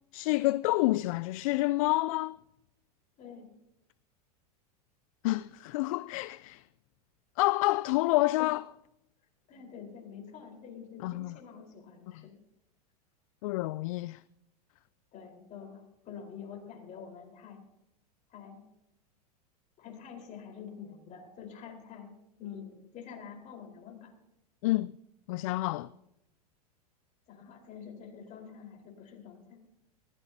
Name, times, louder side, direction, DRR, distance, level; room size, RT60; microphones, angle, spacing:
voice 1, 0.1-2.4 5.2-6.6 7.4-8.7 11.0-11.3 13.4-14.2 24.6-25.0 25.3-25.9, left 19 dB, 60° left, 0.4 m, -28 dB
voice 2, 3.2-3.5 9.5-12.4 15.1-17.6 18.3-18.6 19.8-22.1 22.4-24.1 27.3-29.6, left 7 dB, 40° left, 4.5 m, -47 dB
19.5 x 16.5 x 2.9 m
hypercardioid pair, 110°, 20 cm